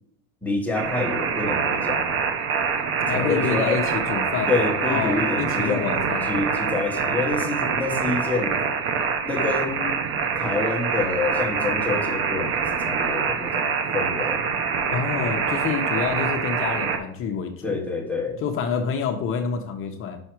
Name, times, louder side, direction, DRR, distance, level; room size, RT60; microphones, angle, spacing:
voice 1, 0.4-2.2 3.1-3.8 4.5-5.9 6.2-8.6 9.2-10.0 10.3-14.5 17.6-18.4, left 3 dB, 5° left, 0 dB, 1.0 m, -27 dB
sound 1, 0.7-17.0, right 6 dB, 30° right, 0.8 m, -25 dB
voice 2, 3.0-4.5 4.8-6.3 14.9-17.8 18.4-20.2, left 6 dB, 30° left, 5 dB, 0.8 m, -27 dB
5.6 x 5.5 x 4.5 m, 0.73 s
supercardioid pair, 130°, 42 cm